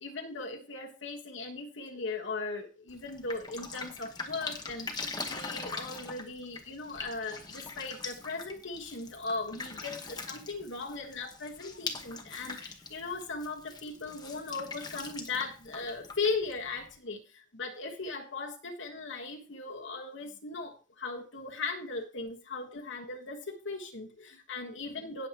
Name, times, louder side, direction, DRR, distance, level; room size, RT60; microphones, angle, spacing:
voice 1, 0.0-25.3, left 3 dB, 65° left, 0 dB, 1.4 m, -38 dB
Drip, 2.9-17.0, left 3 dB, 20° left, 1.2 m, -42 dB
17.5 x 7.4 x 2.9 m, 0.34 s
head